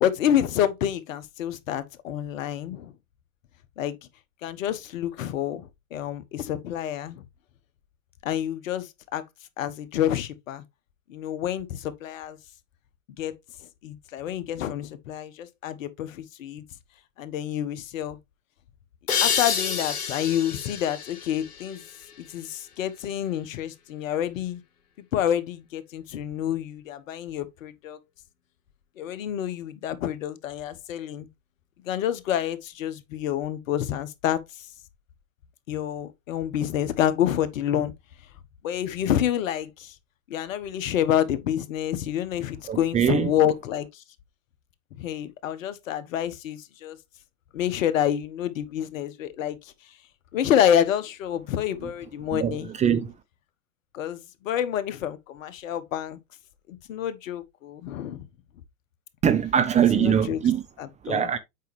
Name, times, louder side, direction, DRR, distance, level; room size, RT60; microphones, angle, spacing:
voice 1, 0.0-2.9 3.8-4.0 4.4-7.2 8.2-9.2 9.6-10.6 11.1-12.4 13.2-13.3 13.8-16.6 17.2-18.2 19.2-21.8 22.2-24.6 25.1-28.0 29.0-31.3 31.8-34.7 35.7-37.9 38.6-39.9 40.3-44.0 45.0-47.0 47.5-49.7 50.3-52.7 53.9-56.2 56.7-58.2 59.7-60.4 60.8-61.3, left 10 dB, 60° left, 1.2 m, -28 dB
sound 1, 19.1-22.5, left 7 dB, 85° left, 1.2 m, -29 dB
voice 2, 42.7-43.3 52.3-53.1 59.2-60.6 61.0-61.4, right 8 dB, 15° right, 0.6 m, -22 dB
8.1 x 5.2 x 3.2 m
hypercardioid pair, 105°, 44 cm